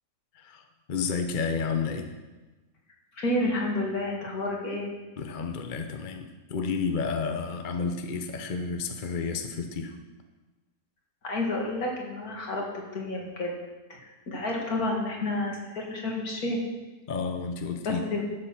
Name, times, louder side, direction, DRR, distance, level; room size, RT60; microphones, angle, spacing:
voice 1, 0.9-2.1 5.2-10.0 17.1-18.0, left 5 dB, 40° left, 5 dB, 0.8 m, -31 dB
voice 2, 3.2-4.9 11.2-13.5 13.9-16.6 17.8-18.2, left 2 dB, 75° left, -1 dB, 2.6 m, -30 dB
12.0 x 7.3 x 6.1 m, 1.2 s
omnidirectional pair, 1.6 m